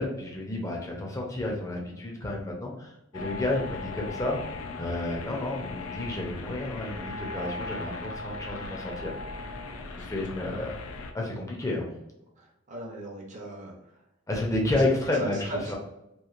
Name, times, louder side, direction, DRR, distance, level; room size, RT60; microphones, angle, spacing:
voice 1, 0.0-9.2 10.0-10.8 11.1-11.9 14.3-15.8, left 2 dB, 15° left, -1 dB, 0.5 m, -31 dB
sound 1, 3.1-11.1, left 3 dB, 85° left, 0.4 m, -38 dB
voice 2, 12.4-13.7 15.1-15.8, right 1 dB, 35° right, -2 dB, 0.6 m, -38 dB
3.0 x 2.5 x 2.4 m, 0.88 s
head